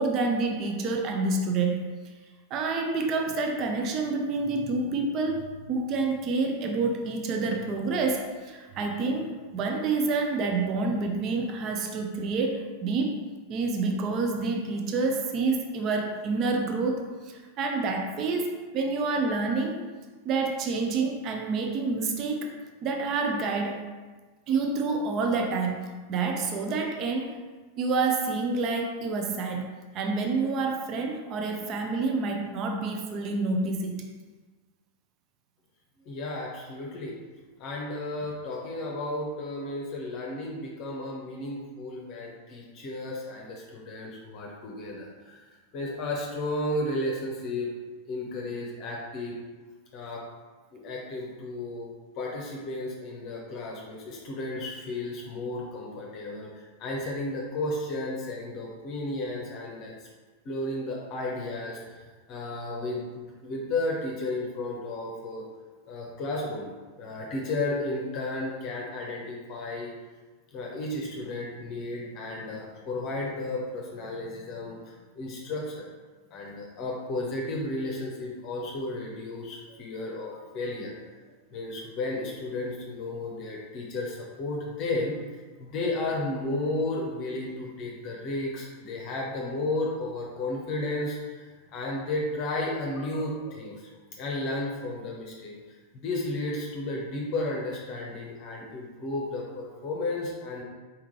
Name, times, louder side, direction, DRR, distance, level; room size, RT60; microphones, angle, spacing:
voice 1, 0.0-1.9 2.5-13.2 13.5-19.8 20.2-22.5 22.8-23.8 24.5-27.3 27.8-29.7 29.9-34.0, right 3 dB, 35° right, 2 dB, 0.6 m, -28 dB
voice 2, 36.1-37.2 37.6-45.4 45.7-47.7 48.1-49.4 49.9-50.2 50.7-51.9 52.2-60.1 60.4-62.0 62.3-65.4 65.9-66.7 67.0-69.9 70.5-75.9 76.3-80.9 81.5-93.9 94.2-95.5 95.9-100.6, left 2 dB, 40° left, -2 dB, 0.8 m, -33 dB
4.6 x 3.6 x 3.1 m, 1.3 s
figure-of-eight pair, 90°, 0 cm